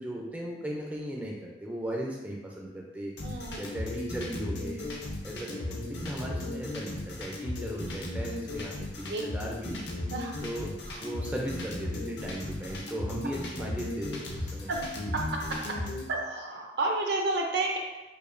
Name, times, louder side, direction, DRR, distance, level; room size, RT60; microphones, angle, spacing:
voice 1, 0.0-4.9 5.2-9.8 10.4-14.7, right 1 dB, 10° right, -2 dB, 0.3 m, -37 dB
sound 1, 3.2-16.1, left 2 dB, 70° left, 0.6 m, -36 dB
voice 2, 3.2-3.8 5.3-5.6 9.1-9.3 10.1-10.4 10.9-11.0 14.7-14.9 15.1-15.4 16.1-17.8, right 2 dB, 65° right, 1 dB, 0.5 m, -31 dB
4.9 x 2.2 x 2.5 m, 1.0 s
head